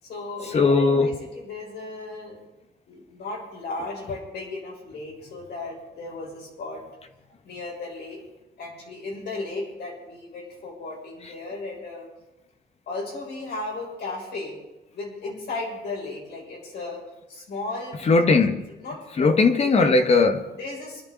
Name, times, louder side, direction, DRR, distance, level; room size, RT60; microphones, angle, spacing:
voice 1, 0.0-2.4 2.9-7.1 7.4-8.2 8.6-12.1 12.9-14.6 14.9-17.0 17.3-18.1 18.4-18.5 18.8-19.3 19.6-19.7 20.5-21.0, left 3 dB, 70° left, 7.1 m, -35 dB
voice 2, 0.5-1.1 18.1-18.7 19.2-20.4, left 4 dB, 35° left, 1.4 m, -18 dB
26.5 x 12.0 x 4.1 m
wide cardioid pair, 165°, 18 cm